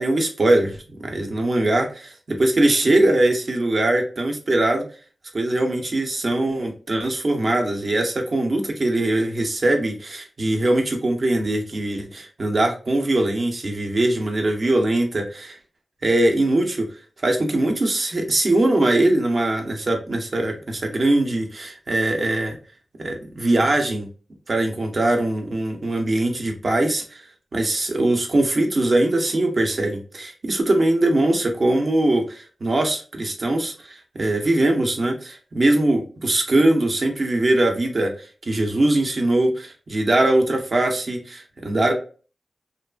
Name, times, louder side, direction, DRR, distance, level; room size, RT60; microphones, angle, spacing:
voice 1, 0.0-4.8 5.3-15.6 16.0-16.9 17.2-22.6 23.0-24.1 24.5-27.3 27.5-41.9, right 1 dB, 50° right, 3 dB, 0.6 m, -21 dB
2.9 x 2.4 x 2.2 m, 0.37 s
wide cardioid pair, 110°, 0 cm